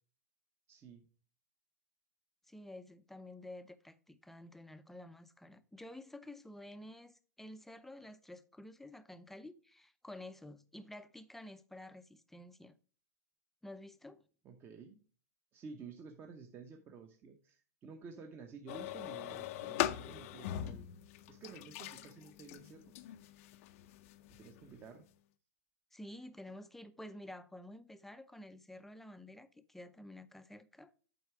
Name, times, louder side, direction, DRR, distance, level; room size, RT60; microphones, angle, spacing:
voice 1, 0.7-1.1 14.4-15.0 15.5-20.9 21.3-22.9 24.3-25.0, right 5 dB, 25° right, 0.8 m, -52 dB
voice 2, 2.5-12.7 13.6-14.2 25.9-30.9, left 1 dB, 5° left, 0.5 m, -51 dB
sound 1, 18.7-24.9, left 13 dB, 55° left, 0.5 m, -41 dB
8.0 x 4.7 x 4.7 m
hypercardioid pair, 120°, 9 cm